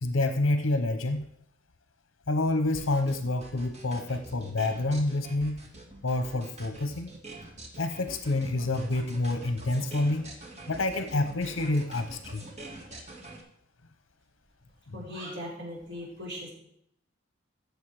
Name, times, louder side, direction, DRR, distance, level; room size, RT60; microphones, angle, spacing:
voice 1, 0.0-1.3 2.3-5.6 6.0-7.1 7.8-10.3 10.7-12.4 14.9-15.0, left 2 dB, 75° left, 9 dB, 0.8 m, -28 dB
sound 1, 2.7-13.4, right 1 dB, 35° right, 2.0 m, -45 dB
voice 2, 14.9-16.5, equal, 65° right, -4 dB, 4.7 m, -39 dB
15.0 x 6.9 x 4.7 m, 0.72 s
head